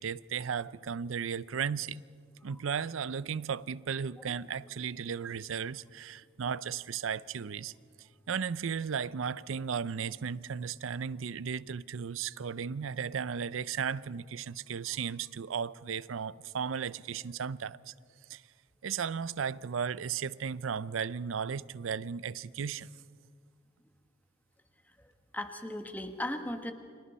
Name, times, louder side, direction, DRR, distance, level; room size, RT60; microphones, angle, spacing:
voice 1, 0.0-2.0 2.4-7.7 8.3-17.9 18.3-18.4 18.8-22.9, right 7 dB, 85° right, 0.5 m, -35 dB
voice 2, 25.0-26.7, left 1 dB, 10° left, 1.3 m, -38 dB
29.5 x 25.5 x 4.2 m
head